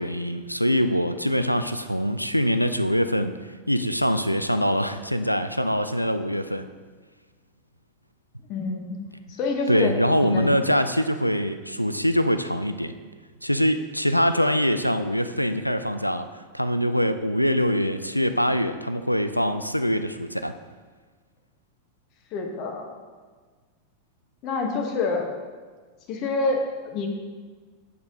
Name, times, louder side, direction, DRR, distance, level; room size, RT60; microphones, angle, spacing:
voice 1, 0.0-3.3 3.7-6.7 9.7-12.9 13.4-16.3 16.5-20.5, equal, 90° left, 10 dB, 0.3 m, -23 dB
voice 2, 8.5-9.0 9.3-10.5 22.3-22.9 24.4-25.3 26.1-27.1, left 3 dB, 40° left, 3 dB, 0.9 m, -27 dB
8.5 x 4.2 x 3.7 m, 1.4 s
figure-of-eight pair, 90°, 0 cm